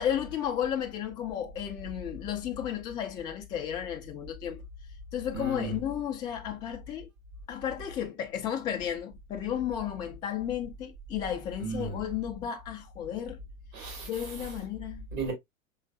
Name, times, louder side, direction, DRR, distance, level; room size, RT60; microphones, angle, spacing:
voice 1, 0.0-4.6 5.1-7.1 7.5-13.4 14.0-15.1, left 9 dB, 10° left, 0.3 m, -33 dB
voice 2, 5.3-5.7 11.6-12.0 13.7-14.1 15.1-15.3, right 3 dB, 65° right, 3.1 m, -34 dB
4.7 x 3.9 x 2.2 m
figure-of-eight pair, 85°, 42 cm